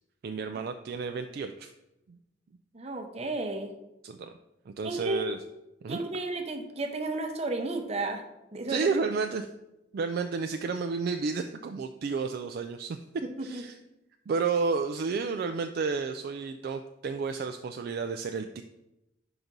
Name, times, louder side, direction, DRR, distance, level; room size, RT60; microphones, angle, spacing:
voice 1, 0.2-1.7 4.0-4.3 4.7-5.4 5.8-6.0 8.7-9.5 9.9-13.0 13.4-13.8 14.3-18.6, right 4 dB, 55° right, 6 dB, 0.3 m, -31 dB
voice 2, 2.7-3.7 4.8-5.2 5.9-8.2 8.5-8.9 13.2-13.6, right 2 dB, 35° right, 5 dB, 0.8 m, -33 dB
5.1 x 3.9 x 5.9 m, 0.91 s
head